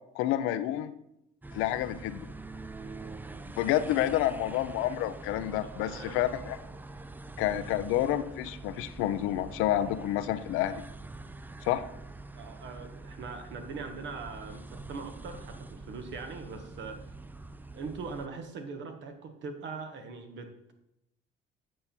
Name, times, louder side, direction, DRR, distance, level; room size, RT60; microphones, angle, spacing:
voice 1, 0.2-0.9 1.5-2.3 3.6-6.6 7.4-10.8 11.6-11.8, left 12 dB, 80° left, 12 dB, 0.6 m, -29 dB
sound 1, 1.4-18.3, right 2 dB, 10° right, 0.4 m, -45 dB
voice 2, 5.8-6.2 7.5-7.6 12.3-17.1 17.7-20.7, right 4 dB, 60° right, 5 dB, 1.4 m, -41 dB
8.6 x 5.6 x 4.4 m, 0.82 s
supercardioid pair, 85°, 21 cm